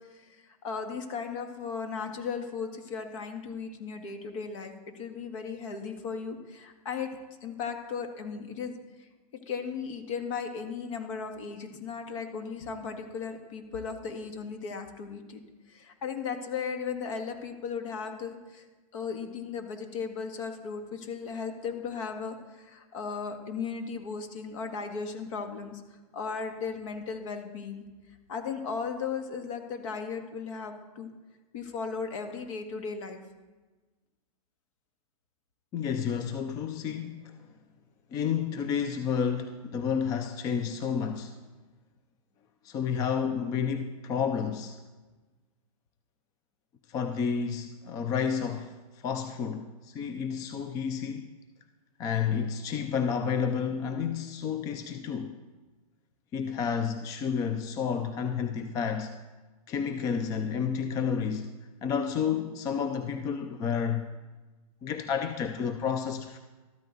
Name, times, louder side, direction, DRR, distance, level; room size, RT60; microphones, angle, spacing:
voice 1, 0.1-7.1 7.4-9.1 9.5-15.4 15.7-18.7 18.9-27.8 28.3-31.1 31.5-33.2, left 5 dB, 55° left, 1.8 m, -36 dB
voice 2, 35.7-37.5 38.1-41.4 42.6-44.8 46.9-51.3 52.0-55.4 56.3-59.1 59.7-61.5 61.8-64.1 64.8-66.4, left 7 dB, 20° left, 0.4 m, -30 dB
13.5 x 13.0 x 3.9 m
supercardioid pair, 160°, 20 cm